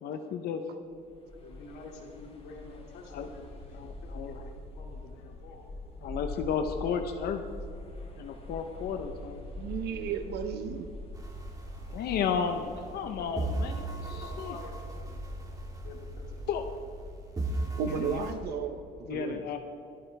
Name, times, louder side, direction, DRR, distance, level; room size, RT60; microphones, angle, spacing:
voice 1, 0.0-0.7 3.1-3.3 3.7-4.4 6.0-7.4 8.2-9.4 11.9-14.6 16.5-16.6 17.9-18.3 19.1-19.6, left 7 dB, 70° left, 6 dB, 0.9 m, -33 dB
sound 1, 0.9-18.6, left 2 dB, 35° left, 3.5 m, -44 dB
voice 2, 1.4-5.7 6.2-6.5 12.2-12.9 13.2-15.2 15.8-16.8, left 3 dB, 85° left, 0 dB, 2.5 m, -49 dB
voice 3, 9.6-10.9 17.8-19.4, right 7 dB, 75° right, 8 dB, 0.9 m, -34 dB
sound 2, 11.1-13.0 13.4-17.0 17.4-18.3, right 2 dB, 20° right, 2.1 m, -37 dB
26.5 x 9.0 x 3.5 m, 2.5 s
cardioid pair, 110°, 17 cm